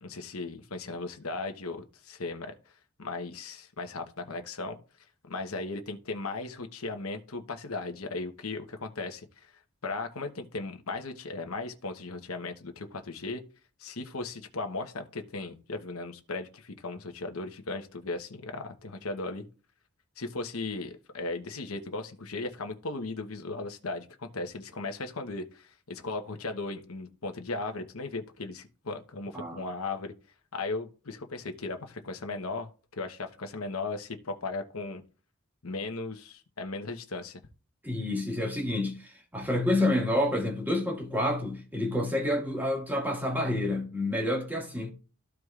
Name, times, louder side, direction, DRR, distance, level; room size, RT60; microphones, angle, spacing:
voice 1, 0.0-2.5 3.0-4.8 5.3-9.3 9.8-13.4 13.8-19.5 20.2-30.1 30.5-32.7 33.0-35.0 35.6-37.4, left 3 dB, 80° left, 1.0 m, -37 dB
voice 2, 37.8-44.9, left 1 dB, 10° right, 1.9 m, -29 dB
14.0 x 4.8 x 2.4 m
head